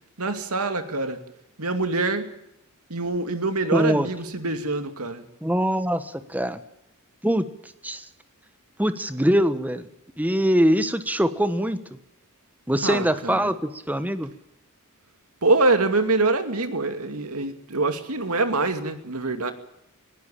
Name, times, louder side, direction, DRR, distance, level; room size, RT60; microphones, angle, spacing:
voice 1, 0.2-1.2 1.6-2.3 2.9-5.2 12.8-13.5 15.4-19.5, right 3 dB, 85° right, 2.5 m, -25 dB
voice 2, 3.7-4.1 5.4-6.6 7.2-7.5 7.8-8.1 8.8-9.9 10.2-11.8 12.7-14.3, equal, 5° right, 1.2 m, -23 dB
20.0 x 17.0 x 9.0 m
head